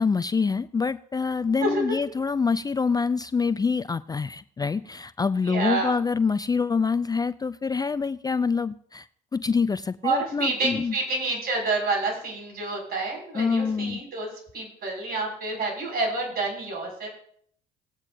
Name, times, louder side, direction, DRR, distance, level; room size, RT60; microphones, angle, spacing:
voice 1, 0.0-9.1 9.3-10.9 13.3-14.0, left 5 dB, 20° left, 14 dB, 0.4 m, -26 dB
voice 2, 5.4-5.9 10.0-14.3 14.5-17.1, right 3 dB, 55° right, -1 dB, 6.0 m, -28 dB
19.0 x 8.9 x 2.7 m, 0.65 s
hypercardioid pair, 60°, 19 cm